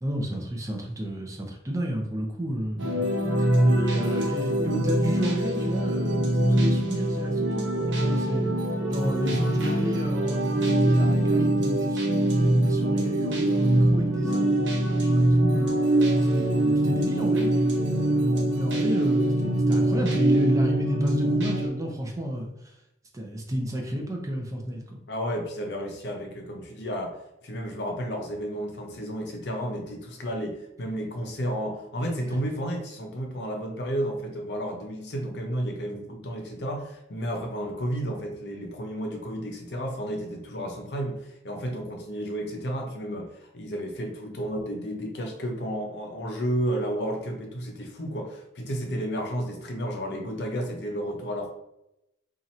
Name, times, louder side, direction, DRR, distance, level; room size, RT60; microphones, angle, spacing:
voice 1, 0.0-3.0 3.4-15.7 16.3-22.7 23.1-24.8 32.2-32.4, equal, 20° right, 1 dB, 0.5 m, -31 dB
sound 1, 2.8-21.7, right 1 dB, 75° right, 0.8 m, -23 dB
voice 2, 25.1-27.2 27.4-43.3 43.5-51.5, equal, 65° left, 2 dB, 0.6 m, -32 dB
2.8 x 2.5 x 4.1 m, 0.86 s
head